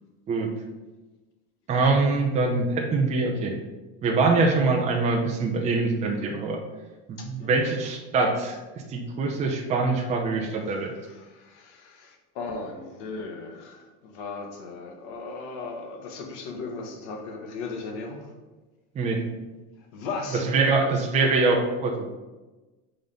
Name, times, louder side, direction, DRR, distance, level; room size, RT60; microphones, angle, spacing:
voice 1, 1.7-3.5 4.0-6.6 7.1-8.6 8.9-10.9 18.9-19.2 20.5-22.2, right 3 dB, 20° right, 0 dB, 0.7 m, -24 dB
voice 2, 7.2-7.6 10.7-18.3 19.8-20.5, left 3 dB, 75° left, 1 dB, 1.5 m, -37 dB
5.3 x 3.9 x 5.5 m, 1.2 s
supercardioid pair, 160°, 35 cm